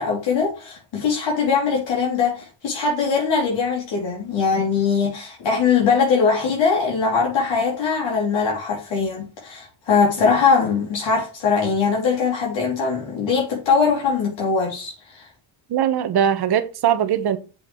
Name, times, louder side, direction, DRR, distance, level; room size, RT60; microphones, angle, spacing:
voice 1, 0.0-15.2, left 5 dB, 60° left, 3.1 m, -21 dB
voice 2, 15.7-17.4, right 9 dB, 50° right, 1.3 m, -20 dB
7.8 x 7.7 x 3.1 m
cardioid pair, 120°, 49 cm